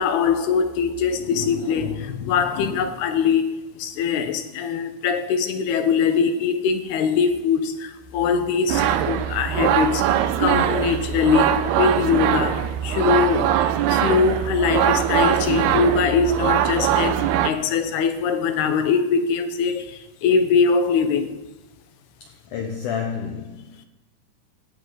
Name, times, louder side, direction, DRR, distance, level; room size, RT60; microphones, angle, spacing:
voice 1, 0.0-13.6 13.9-21.4, left 6 dB, 85° left, 3.2 m, -22 dB
sound 1, 8.7-17.5, right 10 dB, 85° right, 2.8 m, -22 dB
voice 2, 22.2-23.9, left 7 dB, 65° left, 2.2 m, -30 dB
17.5 x 12.5 x 4.1 m
omnidirectional pair, 4.5 m